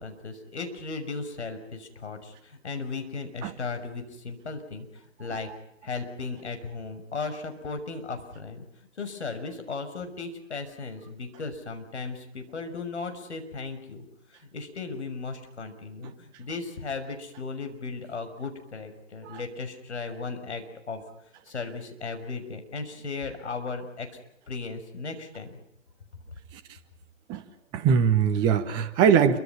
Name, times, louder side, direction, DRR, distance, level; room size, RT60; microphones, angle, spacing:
voice 1, 0.0-5.5 5.8-8.7 9.0-14.0 14.3-21.0 21.5-24.1 24.5-25.6, left 4 dB, 60° left, 6 dB, 6.3 m, -36 dB
voice 2, 27.7-29.4, right 7 dB, 10° right, 9 dB, 1.0 m, -22 dB
29.0 x 25.0 x 5.9 m, 0.74 s
figure-of-eight pair, 145°, 39 cm